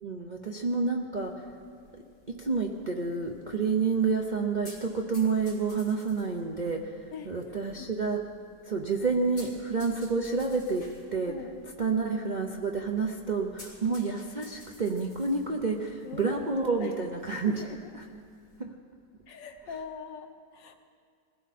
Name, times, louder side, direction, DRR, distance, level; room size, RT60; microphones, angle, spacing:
voice 1, 0.0-1.5 1.9-2.0 2.3-8.2 8.6-11.4 11.8-17.5 18.6-18.7, right 4 dB, 40° right, 1 dB, 0.6 m, -29 dB
sound 1, 1.2-18.6, left 1 dB, 55° left, 3.7 m, -55 dB
voice 2, 11.3-11.7 16.0-17.0 17.4-18.2 19.3-20.8, left 6 dB, 80° left, 5 dB, 1.8 m, -42 dB
21.0 x 16.0 x 4.2 m, 2.2 s
omnidirectional pair, 1.9 m